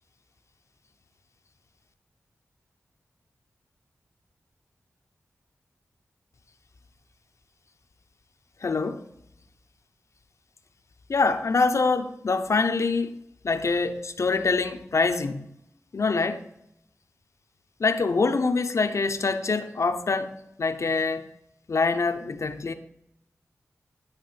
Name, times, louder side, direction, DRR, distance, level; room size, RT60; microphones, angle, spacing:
voice 1, 8.6-9.1 11.1-13.2 13.4-15.5 15.9-16.5 17.8-21.3 21.7-22.7, left 4 dB, 60° left, 0.7 m, -25 dB
10.5 x 3.7 x 5.7 m
cardioid pair, 55°, 6 cm